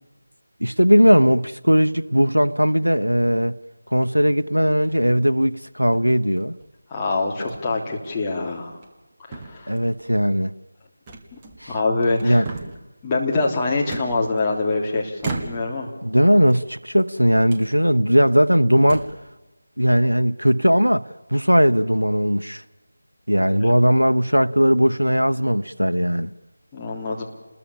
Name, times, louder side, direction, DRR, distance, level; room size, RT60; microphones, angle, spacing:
voice 1, 0.6-3.5 3.9-6.5 9.7-10.5 11.6-11.7 12.2-12.5 16.0-19.1 19.8-22.6 23.3-26.3, equal, 85° right, 1.0 m, -18 dB
sound 1, 4.7-5.1 5.9-6.7 7.4-7.6 8.0-8.2 8.7-9.1 9.3-10.0 11.1-11.8 12.1-12.9 13.9-14.7 15.2-15.9 16.4-17.1 17.5-17.7 18.3-18.4 18.8-19.3, right 3 dB, 15° right, 1.8 m, -36 dB
voice 2, 6.9-8.8 9.3-9.7 11.3-11.4 11.7-12.4 13.0-15.9 23.6-23.7 26.7-27.3, left 3 dB, 15° left, 3.2 m, -24 dB
29.0 x 21.0 x 7.2 m
figure-of-eight pair, 165°, 0 cm